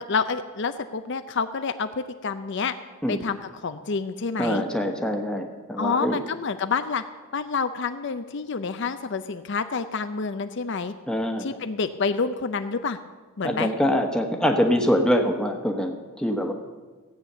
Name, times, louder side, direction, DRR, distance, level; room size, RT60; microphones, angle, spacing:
voice 1, 0.0-2.7 3.1-4.6 5.8-7.0 7.3-10.9 11.4-13.0 13.4-13.7, left 5 dB, 55° left, 9 dB, 0.5 m, -28 dB
voice 2, 4.4-6.2 11.1-11.5 13.4-16.5, equal, 5° left, 3 dB, 1.2 m, -24 dB
16.0 x 8.9 x 6.8 m, 1.4 s
head